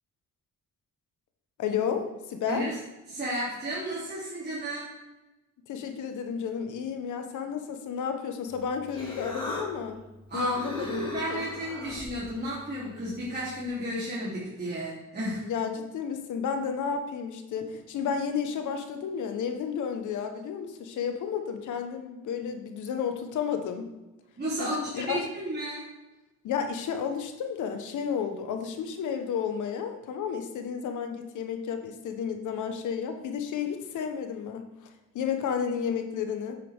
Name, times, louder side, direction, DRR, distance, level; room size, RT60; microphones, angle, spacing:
voice 1, 1.6-2.6 5.7-10.0 10.3-11.4 15.4-23.8 24.6-25.2 26.4-34.6 35.1-36.5, left 7 dB, 80° left, 6 dB, 1.3 m, -32 dB
voice 2, 2.5-2.8 3.1-5.0 10.3-15.5 24.4-25.9, equal, 35° right, -9 dB, 3.4 m, -33 dB
Human voice, 8.5-13.7, left 1 dB, 15° left, 3.3 m, -41 dB
8.9 x 8.4 x 3.7 m, 1.0 s
cardioid pair, 90°, 30 cm